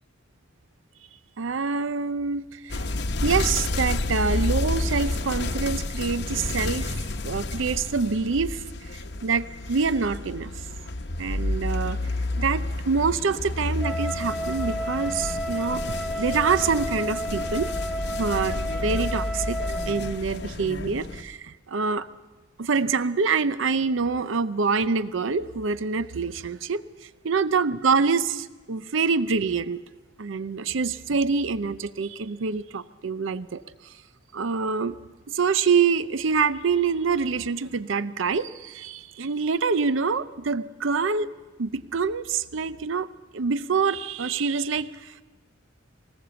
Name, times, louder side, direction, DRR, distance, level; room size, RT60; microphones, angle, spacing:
voice 1, 1.4-2.8 3.2-10.5 11.2-12.0 12.4-17.7 18.1-19.6 19.9-22.1 22.6-29.8 30.2-33.6 34.3-35.0 35.3-41.3 41.6-43.1 43.3-45.2, right 5 dB, 75° right, 14 dB, 0.6 m, -26 dB
sound 1, 2.7-21.2, left 2 dB, 55° left, 0.9 m, -30 dB
Wind instrument woodwind instrument, 13.8-20.2, equal, ahead, 0.9 m, -32 dB
20.0 x 19.5 x 7.0 m, 1.2 s
head